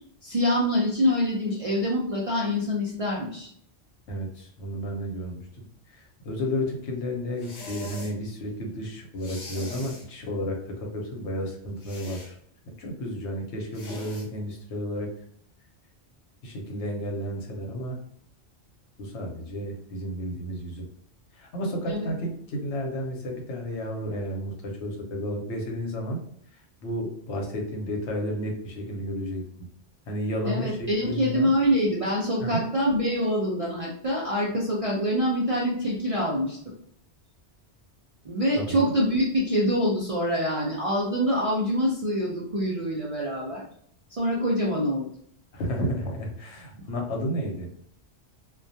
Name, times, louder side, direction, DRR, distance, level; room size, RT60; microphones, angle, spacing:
voice 1, 0.2-3.5 21.9-22.1 30.5-36.6 38.2-43.6 44.1-45.1, equal, 55° right, -5 dB, 0.4 m, -25 dB
voice 2, 4.1-5.4 5.9-12.4 12.7-15.1 16.4-18.0 19.0-20.9 21.3-26.2 26.8-29.4 30.1-31.5 32.4-32.6 38.5-38.9 45.5-47.7, equal, 80° left, 1 dB, 1.0 m, -32 dB
sound 1, 7.4-8.2 9.2-10.1 11.8-12.3 13.7-14.3, left 1 dB, 60° left, 0.8 m, -41 dB
2.2 x 2.2 x 2.6 m, 0.65 s
omnidirectional pair, 1.2 m